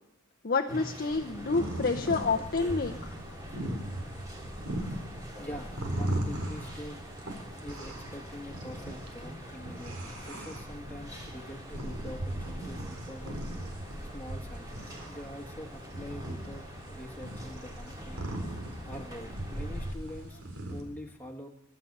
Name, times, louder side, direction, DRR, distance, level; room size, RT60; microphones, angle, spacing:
voice 1, 0.4-3.1, left 4 dB, 45° left, 2 dB, 0.6 m, -29 dB
sound 1, 0.7-19.9, equal, 15° right, 2.6 m, -46 dB
sound 2, 1.1-20.8, right 1 dB, 90° right, 3.8 m, -38 dB
voice 2, 5.4-7.0 7.6-13.4 14.0-18.3 18.9-20.4 20.7-21.5, equal, 10° left, -1 dB, 1.5 m, -44 dB
23.0 x 11.0 x 5.3 m, 0.81 s
head